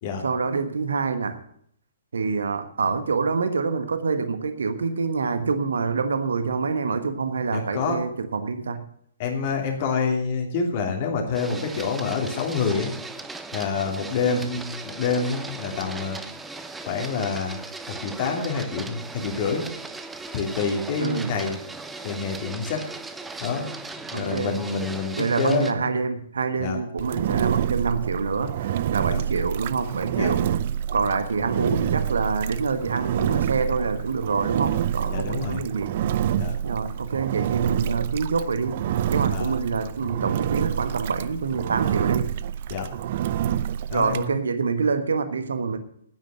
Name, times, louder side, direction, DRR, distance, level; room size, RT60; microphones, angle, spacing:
voice 1, 0.2-1.4 2.1-8.8 14.2-14.5 21.0-21.3 24.1-24.6 25.2-30.5 30.9-35.9 36.6-38.8 39.1-42.3 43.9-45.8, right 5 dB, 65° right, 10 dB, 1.4 m, -26 dB
voice 2, 7.5-8.0 9.2-12.9 13.5-16.2 16.8-17.6 17.9-19.7 20.3-21.6 22.0-22.9 23.4-25.8 26.6-26.8 29.0-29.2 30.2-30.3 35.1-35.6 36.4-36.6 39.3-39.5 42.7-42.9 43.9-44.3, left 5 dB, 40° left, 2 dB, 2.9 m, -27 dB
Printer, 11.3-25.7, right 3 dB, 5° right, 0.8 m, -38 dB
Engine, 27.0-44.3, right 10 dB, 45° right, 0.5 m, -27 dB
9.5 x 9.1 x 9.0 m, 0.67 s
figure-of-eight pair, 120°, 0 cm